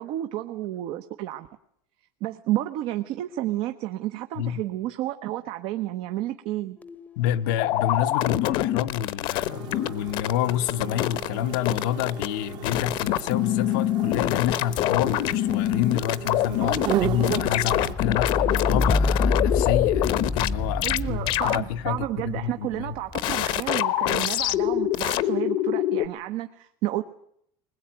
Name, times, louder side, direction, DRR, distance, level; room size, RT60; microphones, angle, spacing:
voice 1, 0.0-1.5 2.2-6.8 16.6-17.1 20.8-27.0, right 14 dB, 60° right, 1.1 m, -31 dB
sound 1, 6.8-8.1 8.4-23.4 24.2-24.8, left 3 dB, 15° left, 0.9 m, -31 dB
voice 2, 7.2-22.9, left 11 dB, 80° left, 0.9 m, -28 dB
sound 2, 7.6-9.9 10.1-11.3 11.5-12.3 12.6-16.9 17.2-20.5 20.8-21.0 21.3-21.6 23.1-26.1, left 14 dB, 55° left, 0.9 m, -25 dB
sound 3, 9.4-17.9, right 10 dB, 45° right, 1.3 m, -34 dB
21.0 x 21.0 x 9.0 m
cardioid pair, 150°, 10 cm